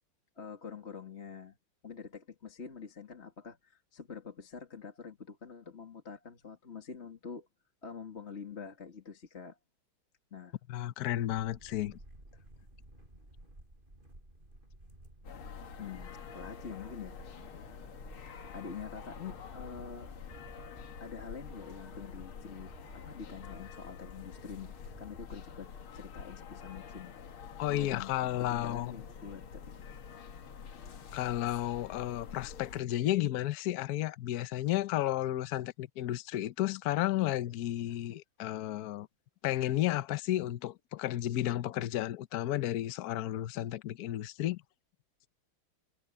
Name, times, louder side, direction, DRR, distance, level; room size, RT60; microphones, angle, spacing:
voice 1, 0.4-1.6 1.8-7.5 7.8-9.6 10.3-10.6 12.3-12.4 15.8-17.2 18.3-20.5 21.0-27.1 27.7-29.6, left 6 dB, 30° left, 2.1 m, -46 dB
voice 2, 10.7-12.0 27.6-28.9 31.1-39.1 39.4-44.6, left 14 dB, 60° left, 1.1 m, -32 dB
sound 1, 11.2-25.4, right 1 dB, 25° right, 6.6 m, -54 dB
sound 2, 15.2-32.8, left 6 dB, 80° left, 2.5 m, -47 dB
omnidirectional pair, 2.3 m